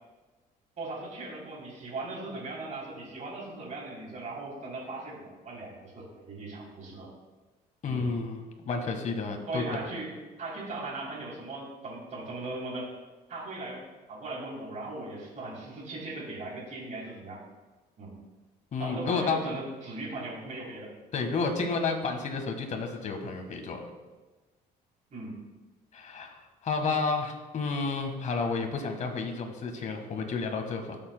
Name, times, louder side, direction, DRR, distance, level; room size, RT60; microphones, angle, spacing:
voice 1, 0.8-7.1 7.9-8.1 9.5-10.1 10.4-12.9 13.3-13.8 14.1-17.4 18.0-18.1 18.8-20.9 25.1-25.4, right 2 dB, 45° right, -4 dB, 3.3 m, -38 dB
voice 2, 7.8-9.8 18.7-19.4 21.1-23.9 25.9-31.0, left 4 dB, 45° left, 4 dB, 1.5 m, -31 dB
17.5 x 7.0 x 2.2 m, 1.2 s
cardioid pair, 110°, 17 cm